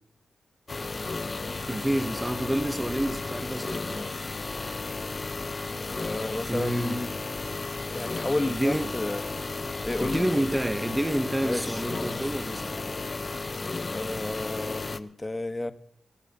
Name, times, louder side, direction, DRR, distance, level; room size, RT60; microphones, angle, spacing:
sound 1, 0.7-15.0, left 3 dB, 40° left, 0.8 m, -34 dB
voice 1, 1.7-4.1 6.5-7.0 8.5-8.9 10.0-13.0, right 1 dB, 15° right, 1.1 m, -29 dB
voice 2, 6.0-7.1 7.9-9.2 9.8-10.3 11.4-12.3 13.9-15.7, left 2 dB, 25° left, 1.1 m, -32 dB
sound 2, 8.4-13.4, left 4 dB, 60° left, 1.4 m, -48 dB
24.0 x 8.3 x 5.3 m
supercardioid pair, 50°, 0 cm